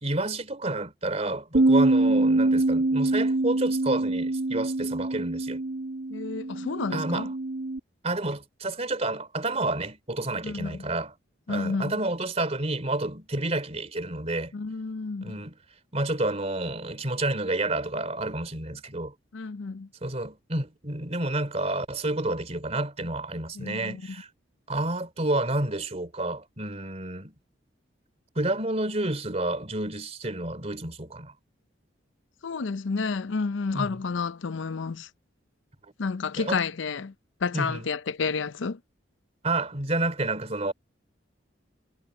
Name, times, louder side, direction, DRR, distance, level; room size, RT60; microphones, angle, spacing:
voice 1, 0.0-5.6 6.9-7.3 8.0-11.1 11.5-14.5 15.2-15.6 15.9-19.1 20.0-24.3 24.7-27.3 28.3-31.3 33.7-33.9 36.4-36.6 37.5-37.8 39.4-40.7, right 2 dB, 35° right, 3.2 m, -29 dB
Bass guitar, 1.5-7.8, right 2 dB, 80° right, 1.5 m, -24 dB
voice 2, 6.1-7.3 10.4-10.9 11.5-11.9 14.5-15.4 19.3-19.9 23.6-24.0 32.4-35.1 36.0-37.1 37.4-38.8, left 4 dB, 85° left, 0.6 m, -30 dB
head